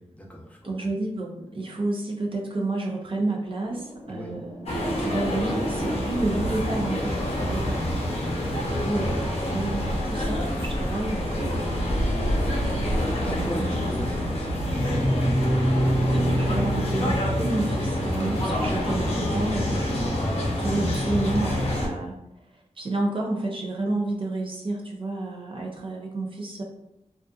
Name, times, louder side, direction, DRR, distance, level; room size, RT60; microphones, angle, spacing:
voice 1, 0.0-0.9 4.0-4.3 11.2-11.6 12.1-12.8 13.2-16.8, equal, 10° left, -2 dB, 0.7 m, -39 dB
voice 2, 0.6-11.8 13.0-13.9 15.9-20.0 20.6-22.2 22.8-26.6, right 2 dB, 45° right, 0 dB, 0.5 m, -30 dB
sound 1, 3.6-10.2, right 1 dB, 85° right, 1.0 m, -46 dB
sound 2, 4.7-21.9, equal, 55° left, 0.7 m, -26 dB
2.4 x 2.4 x 2.3 m, 0.84 s
cardioid pair, 60°, 12 cm